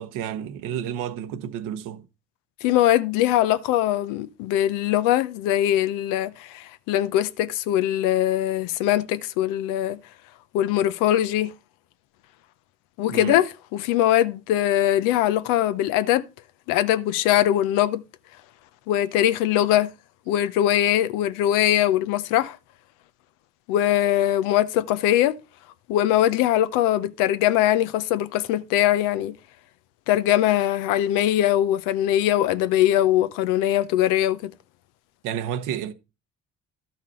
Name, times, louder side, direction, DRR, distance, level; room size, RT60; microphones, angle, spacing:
voice 1, 0.0-2.0 13.1-13.4 35.2-35.9, right 9 dB, 80° right, 1.0 m, -30 dB
voice 2, 2.6-10.0 10.5-11.5 13.0-16.2 16.7-18.0 18.9-19.9 20.3-22.6 23.7-25.4 25.9-29.3 30.1-34.5, left 12 dB, 85° left, 0.7 m, -21 dB
12.0 x 5.7 x 4.3 m
supercardioid pair, 65°, 31 cm